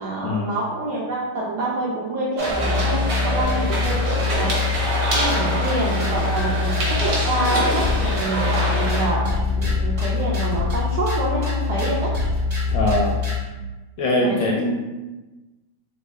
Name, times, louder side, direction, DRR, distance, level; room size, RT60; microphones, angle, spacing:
voice 1, 0.0-4.6 5.1-12.1 14.2-14.7, right 2 dB, 80° right, -5 dB, 0.9 m, -26 dB
sound 1, 2.4-13.4, left 5 dB, 40° right, 0.4 m, -24 dB
sound 2, 2.4-9.1, right 1 dB, 65° right, 1.2 m, -26 dB
voice 2, 12.7-13.2 14.0-14.7, left 1 dB, 75° left, -2 dB, 1.1 m, -21 dB
3.5 x 2.1 x 3.2 m, 1.1 s
omnidirectional pair, 2.3 m